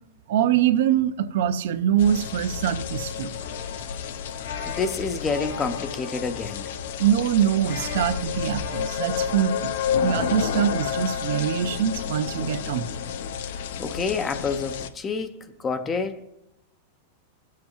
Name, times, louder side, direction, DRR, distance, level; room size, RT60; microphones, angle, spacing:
voice 1, 0.3-3.3 7.0-12.9, right 9 dB, 65° right, 0.5 m, -24 dB
sound 1, 2.0-14.9, left 8 dB, 65° left, 0.5 m, -31 dB
sound 2, 3.3-9.5, left 7 dB, 90° left, 1.9 m, -40 dB
voice 2, 4.7-6.7 13.8-16.2, left 4 dB, 15° left, 0.4 m, -28 dB
18.0 x 7.5 x 3.0 m
supercardioid pair, 165°, 0 cm